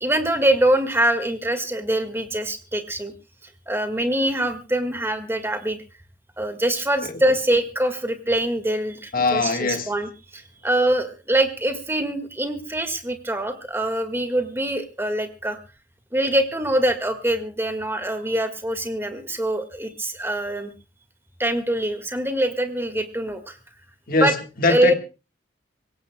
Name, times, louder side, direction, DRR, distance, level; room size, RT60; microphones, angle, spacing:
voice 1, 0.0-3.1 3.7-5.8 6.4-15.6 16.1-20.7 21.4-23.6 24.2-24.3 24.6-24.9, right 1 dB, 15° right, 1.7 m, -24 dB
voice 2, 9.1-9.9 24.1-24.9, left 3 dB, 50° left, 1.5 m, -22 dB
25.5 x 16.5 x 2.2 m
head